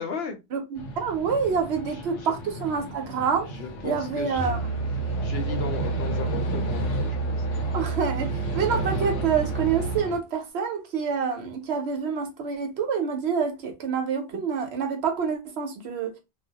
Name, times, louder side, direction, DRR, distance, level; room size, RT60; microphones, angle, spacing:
voice 1, 0.0-0.4 1.9-2.3 3.6-4.6 5.2-7.4, left 4 dB, 65° left, 0.8 m, -35 dB
voice 2, 0.5-3.5 3.8-4.6 7.7-16.1, right 6 dB, 65° right, 0.8 m, -27 dB
sound 1, 0.8-10.2, equal, 85° left, 1.0 m, -34 dB
Musical instrument, 4.3-10.0, right 5 dB, 20° right, 0.5 m, -29 dB
2.3 x 2.0 x 2.7 m
omnidirectional pair, 1.2 m